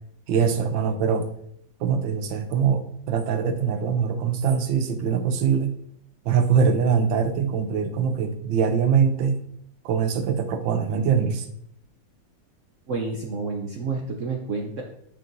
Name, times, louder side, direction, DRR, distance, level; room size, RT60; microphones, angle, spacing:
voice 1, 0.3-1.3 1.8-5.7 6.2-9.4 9.8-11.5, right 6 dB, 80° right, 7 dB, 1.4 m, -23 dB
voice 2, 12.9-14.8, right 4 dB, 60° right, 1 dB, 0.8 m, -29 dB
6.4 x 6.1 x 2.6 m, 0.70 s
omnidirectional pair, 2.1 m